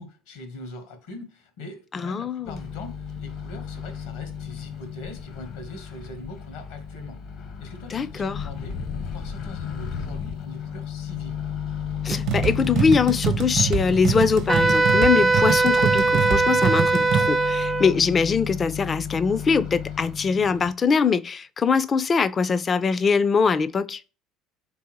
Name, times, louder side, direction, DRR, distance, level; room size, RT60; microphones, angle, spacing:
voice 1, 0.0-7.2 7.6-8.7 9.0-11.4, left 2 dB, 75° left, 1.2 m, -41 dB
voice 2, 1.9-2.6 7.9-8.4 12.0-24.0, left 5 dB, 35° left, 0.4 m, -22 dB
Microwave oven, 2.5-20.7, left 8 dB, 60° left, 0.9 m, -34 dB
sound 1, 12.1-17.3, right 8 dB, 60° right, 0.9 m, -25 dB
Wind instrument woodwind instrument, 14.5-17.9, right 3 dB, 30° right, 0.5 m, -20 dB
3.8 x 3.4 x 3.1 m
hypercardioid pair, 60°, 0 cm